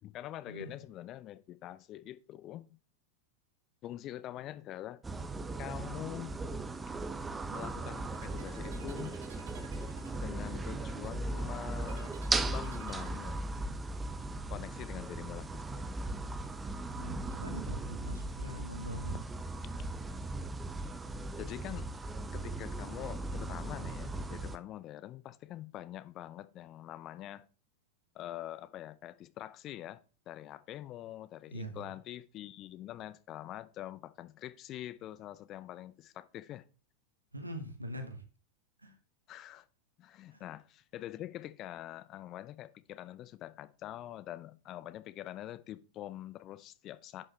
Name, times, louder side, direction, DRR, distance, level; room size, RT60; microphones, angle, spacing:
voice 1, 0.0-2.8 3.8-5.0 5.6-6.3 7.5-9.2 10.2-12.2 12.4-13.6 14.5-16.0 21.4-21.9 22.3-27.5 28.1-30.0 30.3-36.6 39.3-39.7 40.0-47.2, left 13 dB, 35° left, 0.6 m, -45 dB
sound 1, 5.0-24.6, right 2 dB, 10° right, 0.7 m, -38 dB
sound 2, 7.8-13.7, right 5 dB, 55° right, 2.5 m, -53 dB
voice 2, 17.0-19.2 31.5-31.9 37.3-38.2 38.8-38.9 40.3-40.4, right 1 dB, 85° right, 1.6 m, -42 dB
10.5 x 5.6 x 3.2 m
figure-of-eight pair, 90°, 0 cm